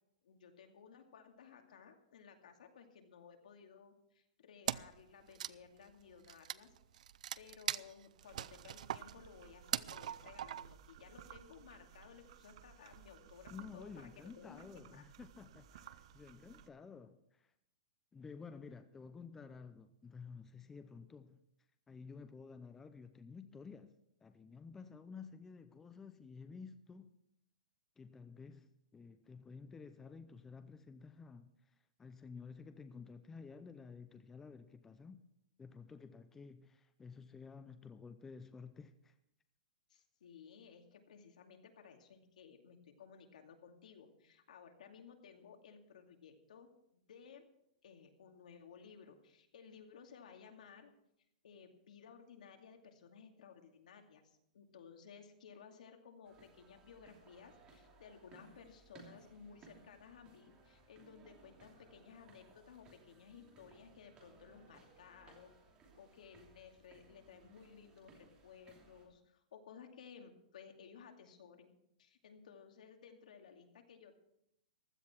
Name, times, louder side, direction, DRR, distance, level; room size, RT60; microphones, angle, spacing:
voice 1, 0.2-6.7 7.4-14.1 14.4-15.0 39.9-47.5 47.8-50.9 51.4-65.6 66.0-71.7 72.0-74.2, left 6 dB, 75° left, 2.5 m, -57 dB
Wood, 4.7-5.0 5.3-10.9, right 10 dB, 65° right, 0.5 m, -41 dB
sound 1, 8.2-16.7, right 10 dB, 50° right, 0.8 m, -59 dB
voice 2, 13.5-17.5 18.1-21.4 21.9-23.9 24.2-27.1 28.0-35.2 35.6-39.1, left 5 dB, 10° left, 0.5 m, -52 dB
sound 2, 56.2-69.0, right 3 dB, 20° right, 2.9 m, -63 dB
15.5 x 12.5 x 4.5 m
hypercardioid pair, 170°, 4 cm